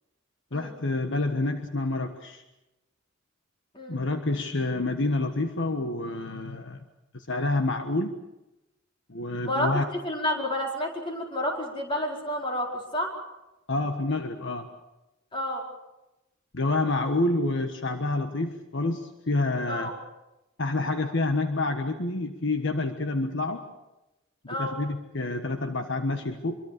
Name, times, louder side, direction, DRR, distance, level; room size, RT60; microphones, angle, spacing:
voice 1, 0.5-2.4 3.9-6.8 7.1-8.1 9.1-9.8 13.7-14.7 16.5-19.9 20.6-23.7 24.5-26.6, left 2 dB, 60° left, 7 dB, 1.4 m, -28 dB
voice 2, 9.4-13.1 15.3-15.6 19.7-19.9 24.5-24.8, left 1 dB, 25° left, 1 dB, 4.5 m, -30 dB
25.0 x 23.5 x 6.7 m, 0.97 s
head